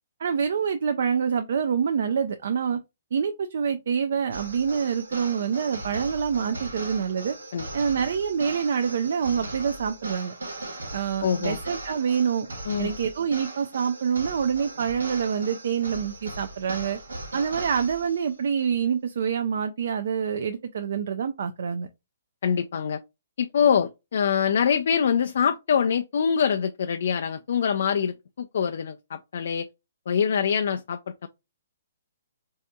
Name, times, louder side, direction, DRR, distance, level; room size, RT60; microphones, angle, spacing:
voice 1, 0.2-2.8 3.1-7.4 7.7-10.3 10.9-12.5 12.8-17.0 17.3-21.9, right 7 dB, 60° right, 0.4 m, -26 dB
sound 1, 4.3-18.4, right 2 dB, 80° right, 1.2 m, -38 dB
voice 2, 11.2-11.6 12.7-12.9 22.4-23.0 23.4-29.7 30.1-31.3, left 7 dB, 60° left, 0.3 m, -24 dB
4.1 x 2.7 x 2.2 m
figure-of-eight pair, 130°, 0 cm